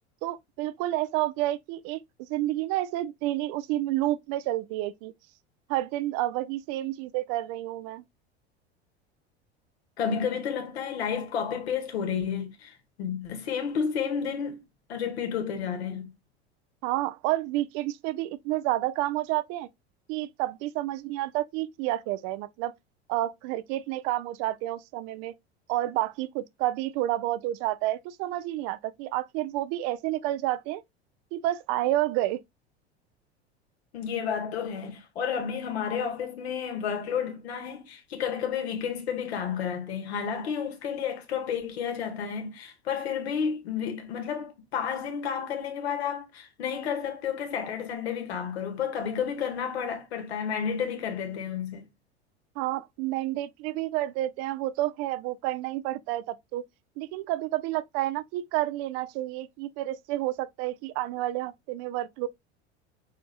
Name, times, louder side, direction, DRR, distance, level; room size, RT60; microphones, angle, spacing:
voice 1, 0.2-5.1 5.7-8.0 16.8-19.7 20.1-22.7 23.1-25.3 25.7-30.8 31.3-32.4 52.6-56.6 57.0-62.3, right 15 dB, 50° right, 0.5 m, -30 dB
voice 2, 10.0-14.6 14.9-16.1 33.9-51.9, left 7 dB, 70° left, 1.7 m, -31 dB
5.1 x 4.3 x 2.2 m
hypercardioid pair, 80°, 33 cm